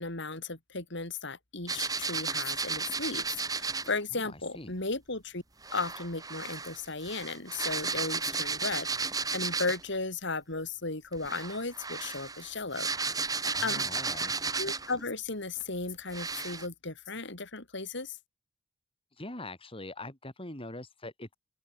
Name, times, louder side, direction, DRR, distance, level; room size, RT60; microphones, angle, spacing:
voice 1, 0.0-5.4 5.7-8.9 9.3-12.9 13.6-13.8 14.6-18.2, left 3 dB, 65° left, 4.5 m, -35 dB
sound 1, 1.7-3.9 5.6-9.9 11.1-15.0 15.6-15.7 16.1-16.7, right 4 dB, 20° right, 2.9 m, -34 dB
voice 2, 4.1-4.7 13.5-14.4 19.2-21.4, left 2 dB, 30° left, 7.0 m, -43 dB
open air
head